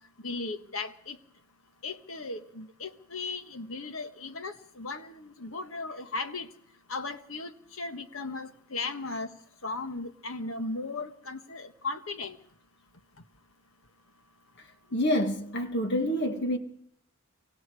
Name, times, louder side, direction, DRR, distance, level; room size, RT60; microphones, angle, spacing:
voice 1, 0.2-1.2 1.8-6.5 6.9-9.3 9.6-12.4, left 3 dB, 75° left, 1.5 m, -36 dB
voice 2, 14.9-16.6, equal, 55° left, 1.7 m, -27 dB
28.5 x 25.0 x 4.9 m
head